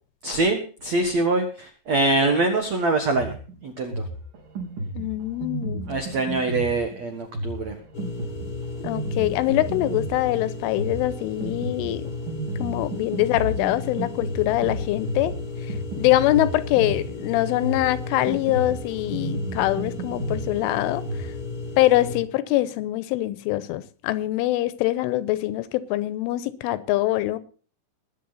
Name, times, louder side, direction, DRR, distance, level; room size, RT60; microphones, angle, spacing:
voice 1, 0.2-3.3 3.6-4.0 5.9-7.7, right 2 dB, 80° right, 1.5 m, -24 dB
Drum kit, 3.1-21.3, right 1 dB, 45° right, 5.0 m, -33 dB
voice 2, 5.0-6.0 8.8-12.1 12.6-15.3 15.6-21.3 21.8-27.4, left 16 dB, 80° left, 3.2 m, -24 dB
sound 1, 7.9-22.2, left 3 dB, 50° left, 1.5 m, -35 dB
21.5 x 8.5 x 4.1 m
omnidirectional pair, 5.8 m